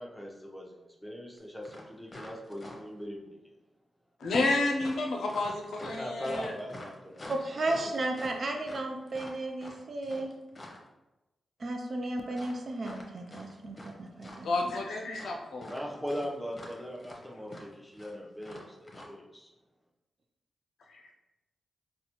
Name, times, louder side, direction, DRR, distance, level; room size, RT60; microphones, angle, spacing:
voice 1, 0.0-3.4 5.8-7.3 15.7-19.5, equal, 5° left, -1 dB, 0.8 m, -40 dB
sound 1, 1.4-1.5 1.6-3.0 4.3-10.9 12.3-13.9 14.2-14.9 15.1-19.1, left 1 dB, 35° left, 0.8 m, -47 dB
voice 2, 4.2-6.5 14.4-15.8 20.9-21.1, left 2 dB, 80° left, 1 dB, 0.5 m, -30 dB
voice 3, 7.3-10.3 11.6-14.5, right 2 dB, 55° right, 3 dB, 0.5 m, -34 dB
3.9 x 2.2 x 2.9 m, 1.0 s
supercardioid pair, 45°, 0 cm